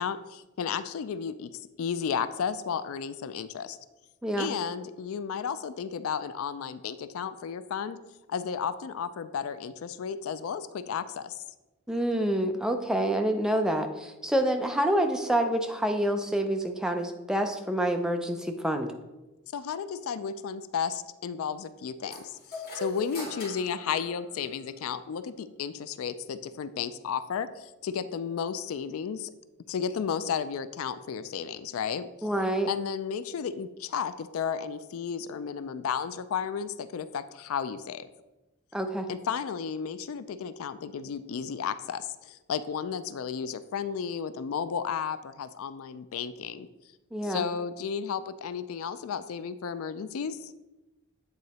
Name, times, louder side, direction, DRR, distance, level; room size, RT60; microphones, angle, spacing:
voice 1, 0.0-1.5 1.8-3.8 4.4-8.0 8.3-11.4 19.5-29.3 29.7-32.3 32.7-38.1 39.1-46.7 47.2-50.5, left 7 dB, 70° left, 13 dB, 0.3 m, -33 dB
voice 2, 11.9-18.9 32.2-32.7 38.7-39.1 47.1-47.4, right 1 dB, 5° right, 5 dB, 0.4 m, -27 dB
sound 1, 22.1-24.8, left 1 dB, 45° left, 2.1 m, -41 dB
8.3 x 3.8 x 4.1 m, 1.1 s
head